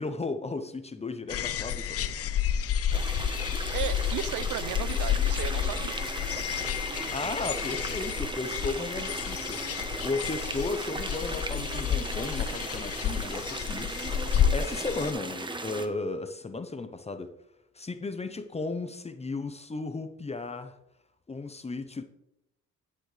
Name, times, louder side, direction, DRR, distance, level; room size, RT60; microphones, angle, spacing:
voice 1, 0.0-1.9 7.1-13.9 14.5-17.3 17.7-20.8 21.3-22.0, left 3 dB, 20° left, 0.8 m, -35 dB
sound 1, 1.3-15.1, left 9 dB, 50° left, 0.6 m, -30 dB
sound 2, 2.9-15.9, right 2 dB, 15° right, 1.1 m, -37 dB
voice 2, 3.7-5.9, right 11 dB, 85° right, 0.6 m, -35 dB
12.0 x 9.0 x 3.3 m
cardioid pair, 90°, 30 cm